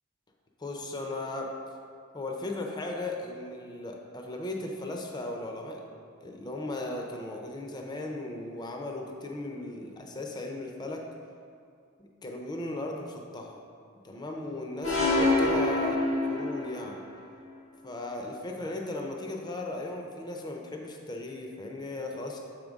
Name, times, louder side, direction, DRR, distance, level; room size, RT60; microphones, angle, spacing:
voice 1, 0.6-1.5 2.1-5.8 6.2-11.0 12.0-13.5 14.0-17.0 17.8-22.4, left 2 dB, 20° left, 1 dB, 0.5 m, -37 dB
sound 1, 14.8-16.8, left 2 dB, 90° left, 1.5 m, -25 dB
6.7 x 5.1 x 3.6 m, 2.4 s
head